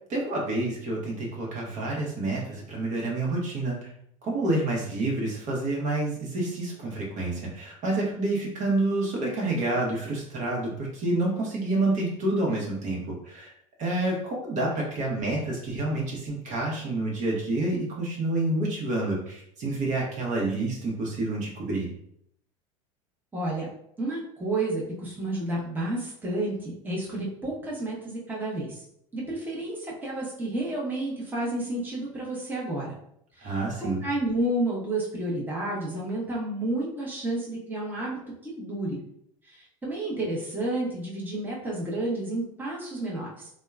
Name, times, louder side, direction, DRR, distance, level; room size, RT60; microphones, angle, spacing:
voice 1, 0.1-3.8 4.2-13.5 13.8-21.9 33.4-34.1, right 2 dB, 45° right, -2 dB, 0.9 m, -28 dB
voice 2, 23.3-23.7 24.0-28.8 29.1-32.9 33.4-39.0 39.5-43.5, right 1 dB, 10° right, -5 dB, 0.9 m, -31 dB
2.8 x 2.2 x 2.3 m, 0.71 s
hypercardioid pair, 85°, 17 cm